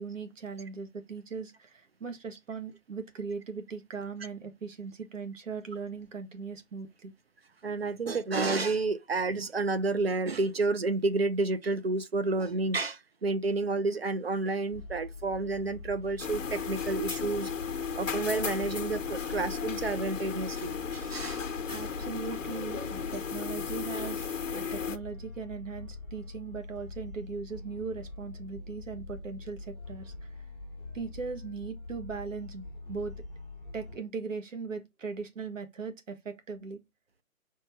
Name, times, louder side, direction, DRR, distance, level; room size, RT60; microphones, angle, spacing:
voice 1, 0.0-7.1 21.7-30.3 30.9-33.1 33.7-36.8, right 5 dB, 60° right, 2.0 m, -39 dB
voice 2, 7.6-17.5 18.0-21.4, right 3 dB, 45° right, 0.7 m, -30 dB
sound 1, 14.7-34.0, left 2 dB, 15° right, 1.7 m, -44 dB
sound 2, 16.2-25.0, left 6 dB, 60° left, 1.1 m, -35 dB
4.7 x 4.6 x 6.0 m
hypercardioid pair, 175°, 43 cm